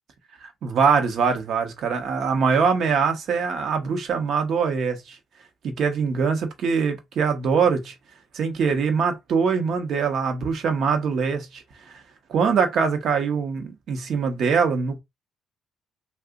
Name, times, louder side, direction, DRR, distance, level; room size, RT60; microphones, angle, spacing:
voice 1, 0.4-5.2 5.6-7.9 8.3-11.6 12.3-15.0, right 5 dB, 65° right, 0.9 m, -23 dB
2.8 x 2.3 x 3.7 m
cardioid pair, 80°, 0 cm